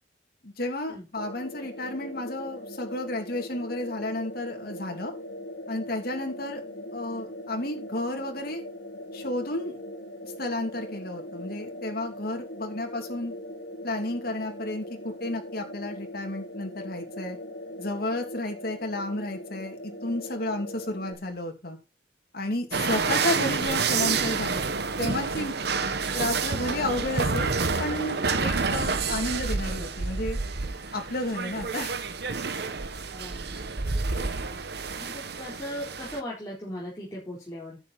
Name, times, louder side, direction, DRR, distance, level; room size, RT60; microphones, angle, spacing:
voice 1, 0.4-5.1 5.7-6.6 6.9-8.6 9.1-9.8 10.2-13.3 13.8-17.4 17.8-21.8 22.3-24.7 25.0-25.6 26.1-27.5 27.8-30.4 30.9-32.0, left 1 dB, 60° left, 3 dB, 2.6 m, -32 dB
sound 1, 1.2-21.1, left 1 dB, 75° left, 2.7 m, -40 dB
sound 2, 22.7-36.2, right 4 dB, 65° right, 1.1 m, -29 dB
voice 2, 33.1-34.4 35.0-37.8, left 1 dB, 20° left, -7 dB, 4.1 m, -39 dB
10.5 x 8.2 x 4.2 m, 0.29 s
head